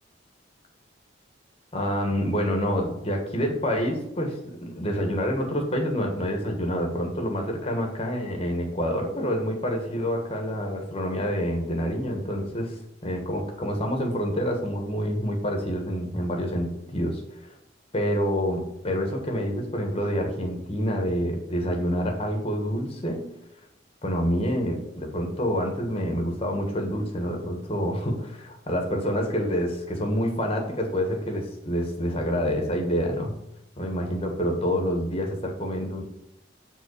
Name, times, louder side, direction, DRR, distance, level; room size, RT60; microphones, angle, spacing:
voice 1, 1.7-17.5 17.9-23.2 24.0-33.3 33.8-36.0, equal, 30° left, 2 dB, 1.5 m, -27 dB
7.4 x 3.8 x 6.4 m, 0.83 s
head